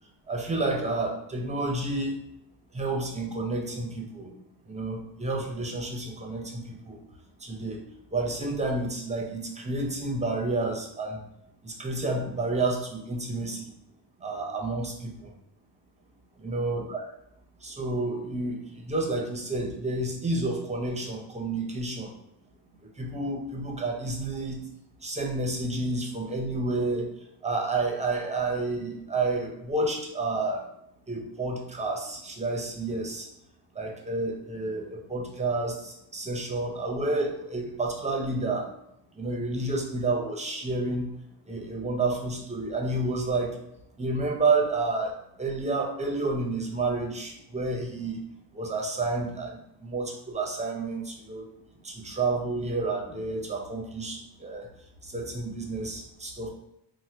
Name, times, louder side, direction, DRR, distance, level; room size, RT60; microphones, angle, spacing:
voice 1, 0.3-2.2 2.7-4.3 4.7-7.0 7.4-7.8 8.1-11.2 11.6-13.7 14.2-15.3 16.4-17.0 17.6-22.1 23.0-24.6 25.0-27.1 27.4-30.6 31.1-33.3 33.8-38.7 39.2-41.1 41.5-43.5 44.0-45.1 45.4-48.2 48.5-51.4 51.8-54.6 55.0-56.5, right 2 dB, 15° right, 1 dB, 0.5 m, -30 dB
2.8 x 2.1 x 3.3 m, 0.80 s
cardioid pair, 105°, 43 cm